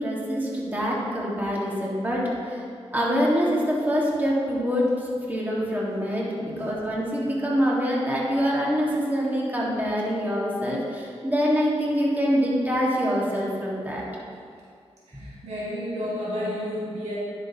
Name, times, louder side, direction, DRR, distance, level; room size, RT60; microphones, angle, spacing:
voice 1, 0.0-2.6 2.9-14.0 15.1-15.2, equal, 15° right, -5 dB, 1.8 m, -25 dB
voice 2, 15.1-17.2, left 1 dB, 85° right, -8 dB, 1.9 m, -31 dB
10.5 x 6.3 x 2.9 m, 2.3 s
cardioid pair, 65°, 11 cm